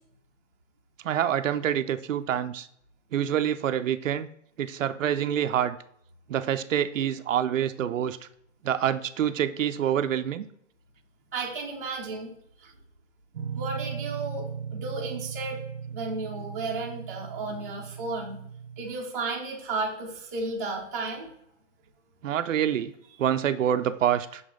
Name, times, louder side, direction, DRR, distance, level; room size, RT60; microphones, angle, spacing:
voice 1, 1.0-2.7 3.1-4.3 4.6-5.8 6.3-8.2 8.6-10.4 22.2-22.9 23.2-24.4, right 10 dB, 85° right, 11 dB, 0.6 m, -26 dB
voice 2, 11.3-12.3 12.6-12.7 13.5-15.6 15.9-18.4 18.8-21.3, right 3 dB, 15° right, -4 dB, 0.7 m, -33 dB
sound 1, 13.3-18.9, right 7 dB, 45° right, 0.8 m, -37 dB
6.3 x 5.3 x 3.7 m, 0.71 s
hypercardioid pair, 180°, 37 cm